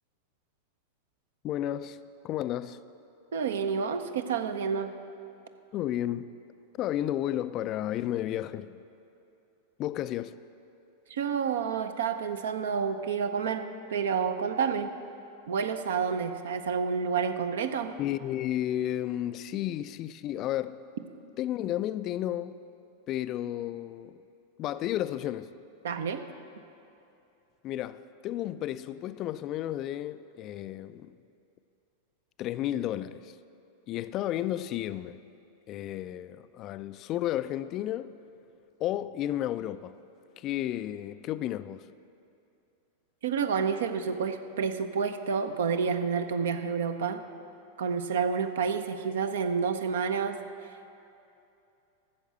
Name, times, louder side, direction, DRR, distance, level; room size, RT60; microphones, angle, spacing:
voice 1, 1.4-2.0 2.2-2.8 5.7-6.3 6.8-8.8 9.8-10.4 18.0-20.8 21.4-22.6 23.1-24.2 24.6-25.5 27.6-31.2 32.4-33.3 33.9-35.2 35.7-38.1 38.8-40.0 40.4-41.9, left 12 dB, 35° left, 0.3 m, -32 dB
voice 2, 3.3-4.9 11.1-14.9 15.5-17.9 25.8-26.2 43.2-47.2 47.8-50.4, right 6 dB, 60° right, 0.7 m, -29 dB
13.0 x 7.1 x 7.7 m
figure-of-eight pair, 90°, 0 cm